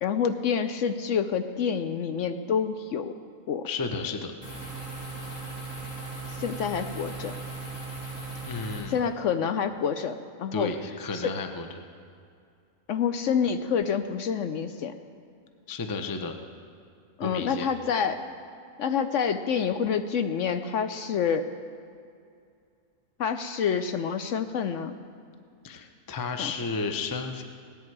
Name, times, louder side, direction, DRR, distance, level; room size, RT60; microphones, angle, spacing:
voice 1, 0.0-3.1 3.5-3.7 6.4-7.3 8.9-10.7 11.1-11.3 12.9-14.9 17.2-18.2 18.8-21.5 23.2-24.9 26.4-26.5, left 7 dB, 65° left, 9 dB, 0.8 m, -27 dB
voice 2, 3.6-4.3 8.4-9.0 10.5-11.8 15.7-16.3 17.2-17.7 25.6-27.4, left 4 dB, 25° left, 6 dB, 0.4 m, -32 dB
sound 1, 4.4-8.8, right 3 dB, 90° left, 5.0 m, -37 dB
17.5 x 10.5 x 4.7 m, 2.4 s
omnidirectional pair, 1.6 m